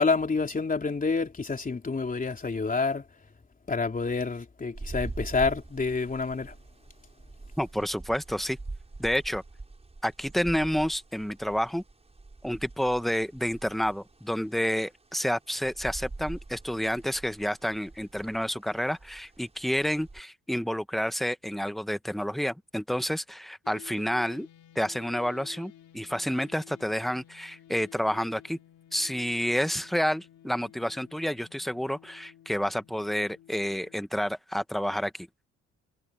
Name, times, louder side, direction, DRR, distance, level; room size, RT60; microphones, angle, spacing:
voice 1, 0.0-3.0 3.7-6.5, left 4 dB, 25° left, 3.4 m, -28 dB
sound 1, 4.7-20.2, right 3 dB, 20° right, 7.2 m, -44 dB
voice 2, 7.6-8.6 9.0-9.4 10.0-11.8 12.4-24.5 24.7-28.6 28.9-35.3, equal, ahead, 1.3 m, -29 dB
sound 2, 23.6-34.0, left 11 dB, 75° left, 6.9 m, -52 dB
cardioid pair, 90°, 30 cm